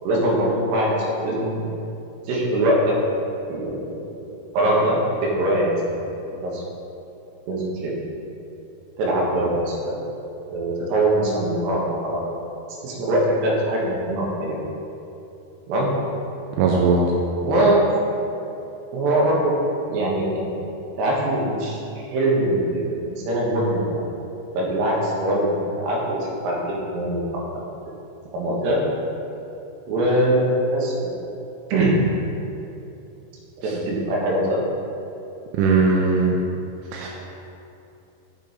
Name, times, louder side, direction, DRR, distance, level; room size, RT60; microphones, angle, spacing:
voice 1, 0.0-1.6 2.3-2.9 3.5-3.9 4.5-5.8 6.3-6.6 7.5-8.0 9.0-10.0 10.5-12.2 12.8-14.6 15.7-15.9 17.4-17.8 18.9-19.5 19.9-20.6 21.0-21.8 22.1-24.0 24.5-27.4 28.3-28.8 29.9-31.1 31.7-32.0 33.6-34.6, right 1 dB, 70° right, -3 dB, 3.3 m, -22 dB
voice 2, 16.6-17.0 35.6-36.4 36.9-37.1, right 4 dB, 85° right, -1 dB, 2.9 m, -18 dB
7.0 x 6.9 x 5.1 m, 2.8 s
omnidirectional pair, 5.4 m